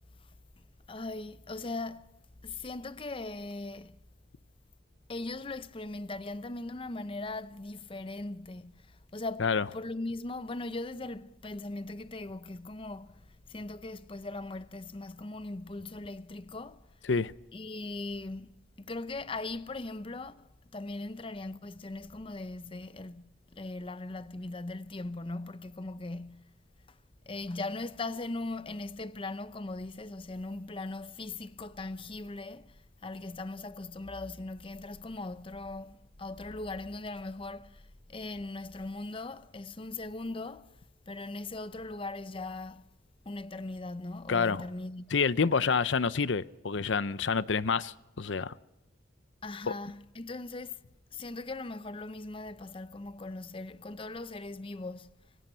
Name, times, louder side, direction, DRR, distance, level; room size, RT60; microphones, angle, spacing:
voice 1, 0.9-2.1 2.4-4.0 5.1-16.8 17.5-26.5 27.3-40.8 41.1-42.9 43.2-45.1 49.4-50.8 51.1-55.1, left 2 dB, 30° left, 0.7 m, -39 dB
voice 2, 44.3-44.6 45.1-48.5, left 5 dB, 80° left, 0.7 m, -28 dB
26.0 x 18.0 x 5.6 m
head